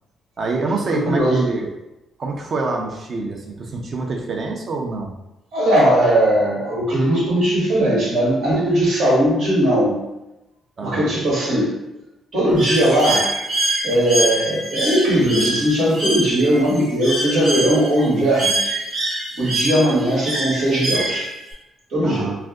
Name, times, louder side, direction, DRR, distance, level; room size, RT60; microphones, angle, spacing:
voice 1, 0.4-1.7 2.2-5.2 10.8-11.1 22.0-22.4, right 3 dB, 50° right, 1 dB, 0.6 m, -25 dB
voice 2, 0.9-1.5 5.5-10.0 10.8-11.7 12.3-13.3 13.8-18.6 19.4-21.3 21.9-22.3, right 1 dB, 70° right, -5 dB, 1.3 m, -18 dB
Bird, 12.6-21.5, right 1 dB, 90° right, 1.3 m, -25 dB
2.5 x 2.2 x 3.5 m, 0.92 s
cardioid pair, 90°, 0 cm